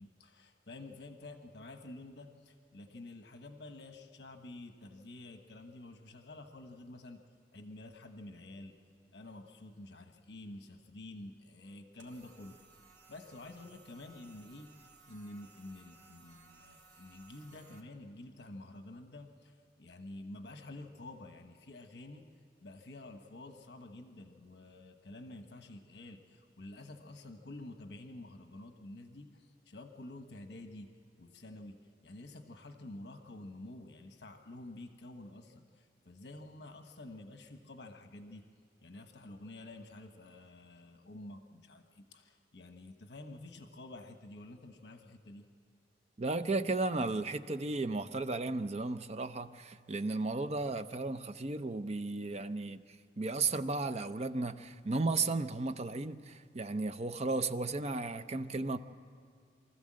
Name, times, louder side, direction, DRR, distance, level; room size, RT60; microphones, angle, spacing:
voice 1, 0.0-7.2 7.5-8.8 9.1-12.6 13.1-22.3 22.6-38.5 38.8-45.5, left 2 dB, 70° left, 1.2 m, -49 dB
sound 1, 12.0-17.8, right 4 dB, 80° right, 2.3 m, -61 dB
voice 2, 46.2-52.8 53.2-58.8, right 3 dB, 40° right, 0.6 m, -34 dB
24.0 x 14.5 x 7.6 m
head